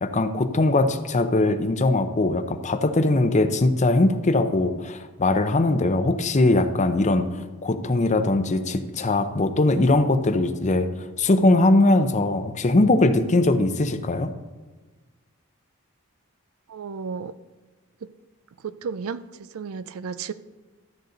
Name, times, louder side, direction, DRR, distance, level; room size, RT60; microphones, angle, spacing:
voice 1, 0.0-14.3, left 2 dB, 35° left, 9 dB, 0.6 m, -21 dB
voice 2, 16.7-17.3 18.0-18.1 18.6-19.2 19.5-20.3, right 6 dB, 70° right, 14 dB, 0.4 m, -32 dB
13.0 x 8.1 x 3.9 m, 1.3 s
head